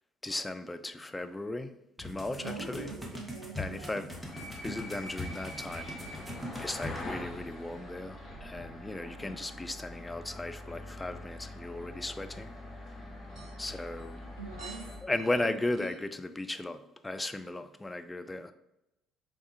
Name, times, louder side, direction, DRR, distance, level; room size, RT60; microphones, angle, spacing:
voice 1, 0.2-1.7 2.0-2.9 3.6-4.1 4.4-5.9 6.6-12.5 13.6-14.2 15.0-18.5, left 2 dB, 15° left, 9 dB, 0.3 m, -36 dB
sound 1, 2.0-7.0, left 1 dB, 5° right, 1.0 m, -41 dB
voice 2, 2.4-4.0 13.6-13.7 14.4-15.0, right 4 dB, 85° right, 1 dB, 0.5 m, -43 dB
sound 2, 4.1-15.0, left 1 dB, 40° left, 1.3 m, -44 dB
sound 3, 13.2-16.1, right 4 dB, 40° right, 1.0 m, -52 dB
4.6 x 3.6 x 2.6 m, 0.88 s
figure-of-eight pair, 50°, 0 cm